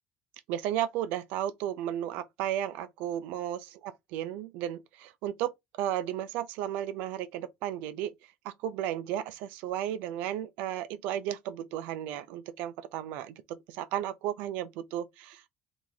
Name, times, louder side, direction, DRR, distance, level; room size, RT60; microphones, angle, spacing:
voice 1, 0.5-5.5 5.8-8.1 8.4-15.5, right 11 dB, 80° right, 0.7 m, -34 dB
3.6 x 3.1 x 4.0 m
cardioid pair, 175°, 3 cm